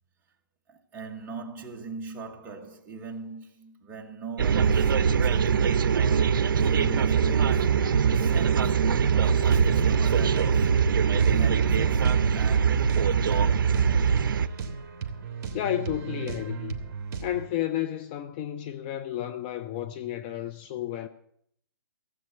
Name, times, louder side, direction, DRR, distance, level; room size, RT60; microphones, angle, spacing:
voice 1, 0.7-8.8 9.1-10.8 11.2-13.8, right 4 dB, 15° right, 1.3 m, -41 dB
sound 1, 4.4-14.5, right 6 dB, 60° right, 0.7 m, -22 dB
sound 2, 8.9-17.5, right 5 dB, 45° right, 1.8 m, -36 dB
voice 2, 15.5-16.8 17.2-21.1, left 12 dB, 25° left, 0.5 m, -32 dB
15.5 x 7.9 x 7.9 m
hypercardioid pair, 155°, 12 cm